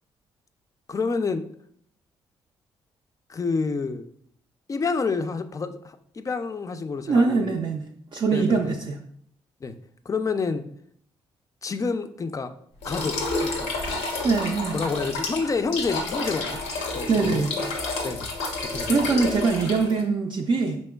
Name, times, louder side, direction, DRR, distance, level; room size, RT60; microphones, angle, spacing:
voice 1, 0.9-1.4 3.3-4.0 4.7-7.6 8.3-8.7 9.6-9.7 10.1-10.6 11.6-12.5 12.8-13.7 14.7-16.6 16.9-17.4 18.0-18.3 18.7-19.1, left 4 dB, 30° left, 9 dB, 0.4 m, -28 dB
voice 2, 7.1-7.8 8.1-9.0 14.2-14.8 17.1-17.6 18.9-20.8, right 4 dB, 45° right, 0 dB, 0.4 m, -23 dB
sound 1, 12.8-20.0, left 2 dB, 90° left, 0.6 m, -30 dB
4.3 x 3.0 x 2.2 m, 0.65 s
supercardioid pair, 55°, 11 cm